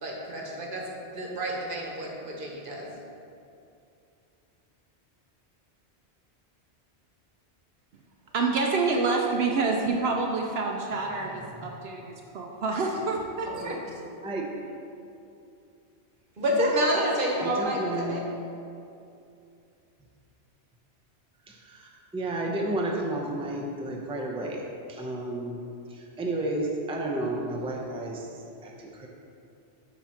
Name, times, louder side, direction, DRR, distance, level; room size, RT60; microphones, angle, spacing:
voice 1, 0.0-2.9 13.5-13.8 16.4-18.2, equal, 50° right, -2 dB, 1.3 m, -29 dB
voice 2, 8.3-13.8, right 3 dB, 70° right, 1 dB, 0.8 m, -27 dB
voice 3, 11.3-11.7 14.2-14.6 17.4-18.3 21.4-25.6 25.9-29.1, right 1 dB, 5° right, -1 dB, 0.5 m, -32 dB
7.3 x 4.0 x 5.8 m, 2.6 s
omnidirectional pair, 1.1 m